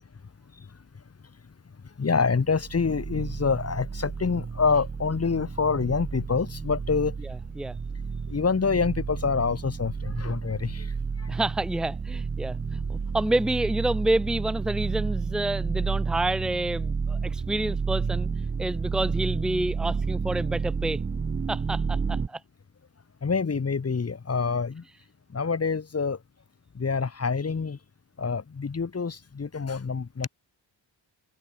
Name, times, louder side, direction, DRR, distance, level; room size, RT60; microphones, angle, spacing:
voice 1, 2.0-7.1 8.3-10.8 23.2-24.8 25.3-26.2 26.8-27.8 28.2-30.3, left 5 dB, 30° left, 1.3 m, -26 dB
sound 1, 2.4-22.3, right 5 dB, 20° right, 0.5 m, -31 dB
voice 2, 7.2-7.8 11.3-18.3 18.6-21.0 21.5-22.4, right 1 dB, ahead, 0.9 m, -28 dB
cardioid pair, 60°, 47 cm